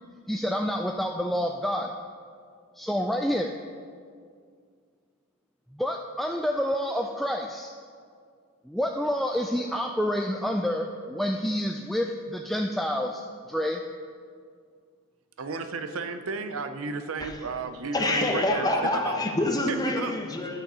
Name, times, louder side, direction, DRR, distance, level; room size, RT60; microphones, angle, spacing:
voice 1, 0.3-1.9 2.8-3.6 5.8-7.7 8.7-13.2 13.5-13.8, equal, ahead, 2 dB, 0.3 m, -28 dB
voice 2, 15.4-19.2 19.7-20.1, right 4 dB, 70° right, 8 dB, 0.7 m, -33 dB
voice 3, 17.9-20.6, left 1 dB, 20° left, 2 dB, 1.0 m, -26 dB
11.5 x 6.4 x 5.5 m, 2.1 s
head